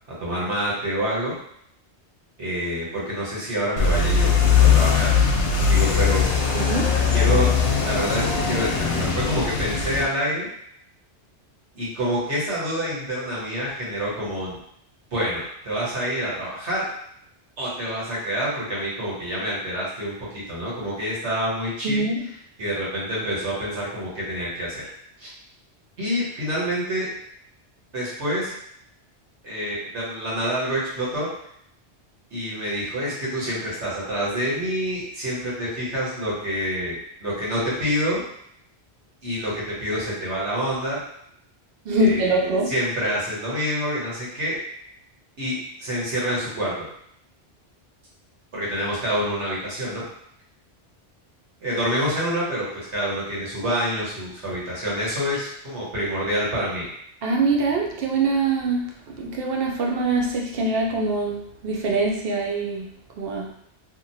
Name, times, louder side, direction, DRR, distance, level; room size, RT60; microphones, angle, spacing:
voice 1, 0.2-1.3 2.4-5.1 5.7-6.3 7.1-7.5 7.8-10.5 11.7-14.6 15.1-16.9 17.6-22.1 22.6-24.8 25.2-25.3 26.0-27.1 27.9-28.5 29.4-31.3 32.3-38.2 39.2-41.0 41.9-42.4 42.6-44.6 45.4-46.9 48.5-50.0 51.6-56.9, equal, 85° right, -7 dB, 1.4 m, -27 dB
sound 1, 3.8-10.0, left 6 dB, 85° left, 0.9 m, -20 dB
voice 2, 6.5-7.0 21.8-22.2 41.9-42.7 57.2-58.9 59.2-62.9 63.2-63.5, right 2 dB, 60° right, -1 dB, 0.8 m, -23 dB
2.9 x 2.5 x 2.6 m, 0.71 s
omnidirectional pair, 1.1 m